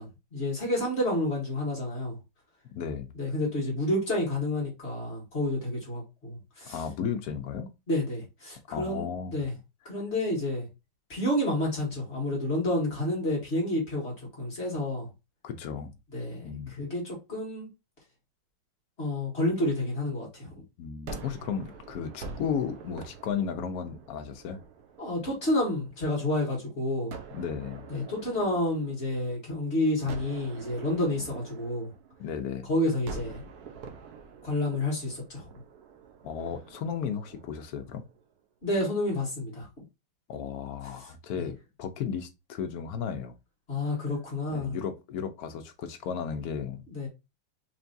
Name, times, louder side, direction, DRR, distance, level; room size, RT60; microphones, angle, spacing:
voice 1, 0.0-2.2 3.1-6.8 7.9-9.5 9.8-10.7 11.1-15.1 16.1-17.7 19.0-20.5 25.0-27.1 27.9-31.9 32.7-33.4 34.4-35.4 38.6-39.7 41.0-41.1 43.7-44.8 46.9-47.1, left 1 dB, 35° left, 1.8 m, -29 dB
voice 2, 2.7-3.1 6.7-7.7 8.7-9.4 15.4-15.9 16.4-16.9 20.8-24.6 27.3-27.9 31.2-31.3 32.2-32.7 36.2-38.0 40.3-43.3 44.5-46.9, left 7 dB, 65° left, 1.0 m, -34 dB
Gunshot gunfire, 21.1-26.2 27.1-29.5 30.1-32.6 33.1-38.3, right 4 dB, 60° right, 1.1 m, -46 dB
4.6 x 2.9 x 2.6 m
omnidirectional pair, 2.1 m